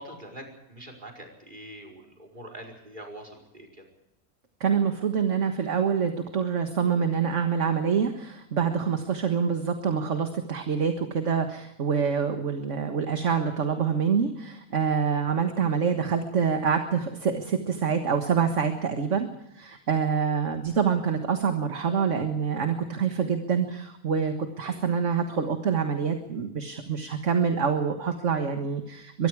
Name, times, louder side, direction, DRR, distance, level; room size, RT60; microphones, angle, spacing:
voice 1, 0.0-3.8 24.6-24.9, right 1 dB, 30° right, 4 dB, 5.1 m, -44 dB
voice 2, 4.6-19.3 19.5-29.3, right 6 dB, 55° right, 6 dB, 1.9 m, -26 dB
24.0 x 22.5 x 4.8 m, 0.83 s
omnidirectional pair, 1.6 m